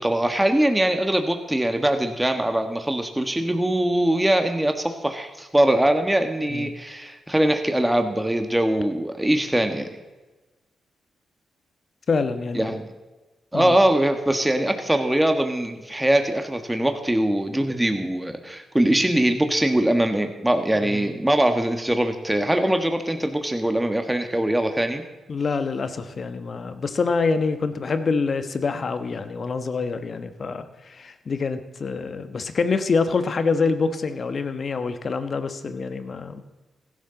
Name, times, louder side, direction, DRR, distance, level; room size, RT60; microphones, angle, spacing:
voice 1, 0.0-10.0 12.5-12.9 13.5-25.0, right 1 dB, 10° right, 6 dB, 1.5 m, -22 dB
voice 2, 12.1-12.8 13.5-13.8 20.8-21.1 25.3-36.4, left 4 dB, 55° left, 10 dB, 1.2 m, -26 dB
16.0 x 11.5 x 4.0 m, 1.1 s
supercardioid pair, 45°, 0 cm